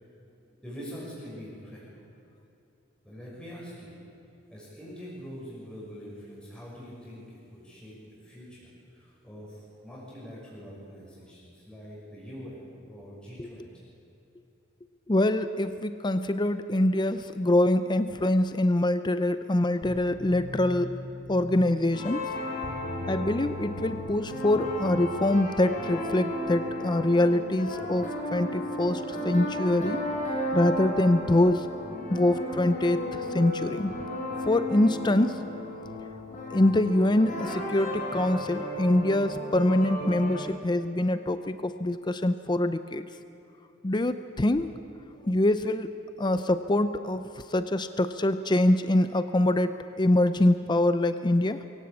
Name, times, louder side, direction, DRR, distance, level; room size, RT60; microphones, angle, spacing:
voice 1, 0.6-1.9 3.0-3.9 4.5-13.7, equal, 5° left, -6 dB, 6.0 m, -44 dB
voice 2, 15.1-20.9 21.3-22.3 23.1-30.0 30.5-31.7 32.1-33.9 34.4-35.4 36.5-43.1 43.8-44.7 45.2-45.9 46.2-51.7, left 1 dB, 25° left, 11 dB, 0.6 m, -24 dB
sound 1, 19.8-25.4, left 1 dB, 65° left, 2.8 m, -41 dB
sound 2, 21.9-40.4, left 1 dB, 40° left, 5.2 m, -34 dB
23.0 x 16.5 x 8.4 m, 2.9 s
head